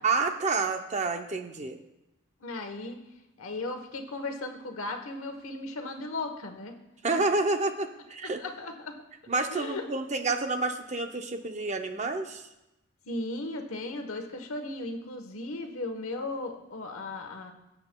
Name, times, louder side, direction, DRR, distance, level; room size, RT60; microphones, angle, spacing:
voice 1, 0.0-1.8 7.0-8.4 9.3-12.4, right 3 dB, 30° right, 7 dB, 0.5 m, -29 dB
voice 2, 2.4-3.0 3.4-6.7 7.1-7.2 8.4-9.0 9.5-9.8 13.1-17.5, left 2 dB, 80° left, 5 dB, 1.0 m, -36 dB
15.5 x 7.7 x 2.2 m, 0.94 s
head